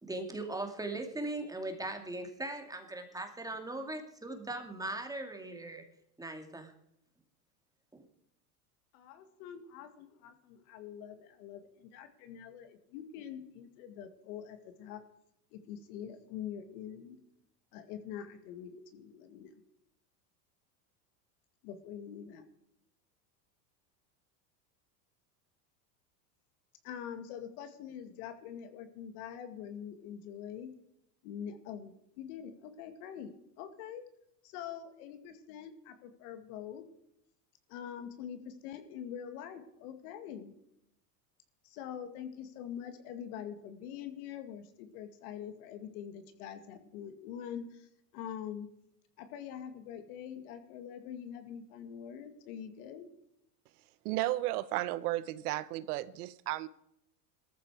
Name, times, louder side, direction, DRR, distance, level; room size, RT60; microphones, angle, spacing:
voice 1, 0.0-5.8 6.2-6.7 7.9-8.0, right 2 dB, 5° right, 2.3 m, -39 dB
voice 2, 8.9-15.0 15.5-17.2 17.7-19.6 21.6-22.4 26.8-30.7 31.2-34.0 34.4-36.9 37.7-40.5 41.6-48.7 49.2-53.1, left 9 dB, 65° left, 2.2 m, -44 dB
voice 3, 54.0-56.7, right 16 dB, 70° right, 0.9 m, -33 dB
17.5 x 14.0 x 4.8 m
supercardioid pair, 110°, 47 cm